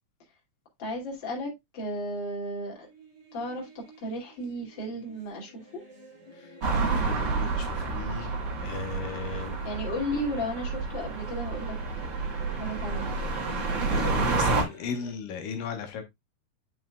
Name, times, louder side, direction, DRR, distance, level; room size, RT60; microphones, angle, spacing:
voice 1, 0.8-2.9 3.3-3.7 4.0-5.6 9.6-11.8 12.0-12.1 12.5-13.2, equal, 35° left, 3.0 m, -34 dB
sound 1, 2.7-15.1, right 2 dB, 20° right, 3.9 m, -49 dB
sound 2, 6.6-14.6, right 4 dB, 45° right, 1.8 m, -29 dB
voice 2, 6.9-9.6 13.7-16.0, left 6 dB, 75° left, 2.9 m, -37 dB
8.7 x 5.9 x 2.3 m
omnidirectional pair, 3.9 m